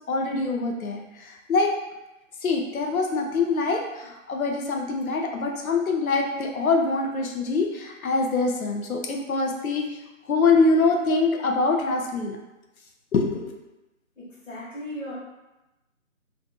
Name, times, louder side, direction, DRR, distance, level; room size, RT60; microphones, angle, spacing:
voice 1, 0.1-1.7 2.4-9.9 10.3-12.4 13.1-13.5, left 3 dB, 85° left, 2 dB, 0.6 m, -24 dB
voice 2, 14.2-15.1, equal, 65° left, -7 dB, 1.2 m, -37 dB
2.5 x 2.5 x 2.3 m, 1.0 s
figure-of-eight pair, 170°, 41 cm